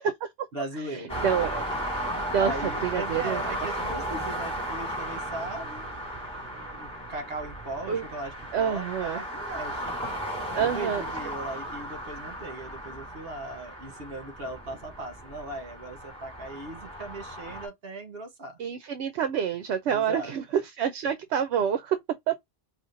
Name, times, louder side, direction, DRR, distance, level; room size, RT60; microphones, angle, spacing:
voice 1, 0.5-1.3 2.3-5.9 6.7-10.0 10.5-18.6 19.9-20.3, right 2 dB, 60° right, 1.3 m, -38 dB
sound 1, 1.1-17.7, equal, 5° left, 2.1 m, -35 dB
voice 2, 1.2-1.7 1.9-2.5 2.8-3.4 7.9-8.0 8.5-9.2 10.6-11.0 18.6-22.0 22.3-22.4, right 8 dB, 75° right, 0.9 m, -27 dB
5.0 x 2.5 x 2.5 m
omnidirectional pair, 1.2 m